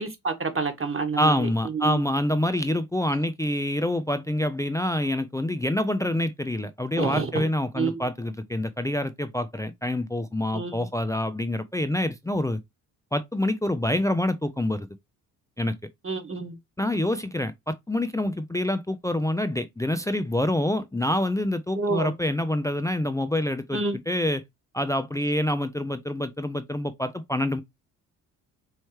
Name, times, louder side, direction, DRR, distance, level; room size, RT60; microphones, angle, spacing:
voice 1, 0.0-2.0 7.0-7.5 7.8-8.1 10.5-10.9 16.0-16.6 21.7-22.1 23.7-24.0, right 4 dB, 30° right, 1.4 m, -28 dB
voice 2, 1.2-12.6 13.1-14.9 15.6-15.8 16.8-24.4 24.7-27.6, left 1 dB, 10° left, 0.4 m, -26 dB
4.4 x 3.2 x 3.1 m
hypercardioid pair, 45°, 45 cm